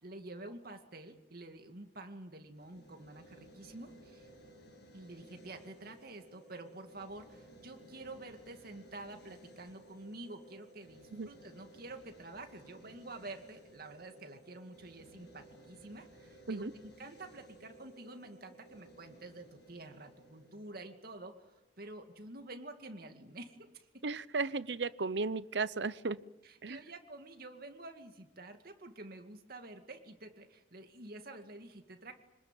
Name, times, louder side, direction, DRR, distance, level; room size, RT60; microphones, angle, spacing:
voice 1, 0.0-4.3 4.9-21.4 21.8-23.9 26.4-32.1, right 2 dB, 55° right, 5 dB, 2.3 m, -49 dB
sound 1, 2.5-21.6, right 1 dB, 65° left, 7.9 m, -58 dB
voice 2, 24.0-26.2 26.6-26.8, right 4 dB, 70° right, 16 dB, 0.8 m, -35 dB
26.0 x 20.5 x 9.2 m, 1.0 s
head